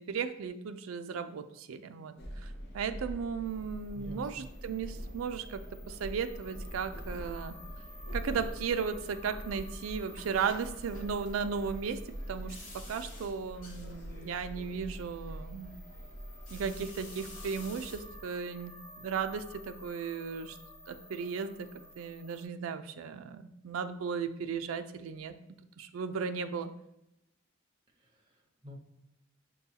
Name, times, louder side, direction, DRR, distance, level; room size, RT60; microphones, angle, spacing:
voice 1, 0.0-7.6 8.1-12.0 12.3-15.7 16.5-20.6 20.9-21.7 22.0-25.3 25.8-26.7, right 6 dB, 85° right, 10 dB, 0.4 m, -36 dB
sound 1, 2.2-18.2, equal, 55° left, 0.6 m, -44 dB
sound 2, 3.4-22.4, left 1 dB, 25° left, 0.8 m, -53 dB
voice 2, 3.9-4.4 28.0-28.8, left 1 dB, 25° right, -1 dB, 0.7 m, -49 dB
sound 3, 9.6-18.0, left 2 dB, 75° left, 1.1 m, -53 dB
6.8 x 2.3 x 2.7 m, 0.84 s
head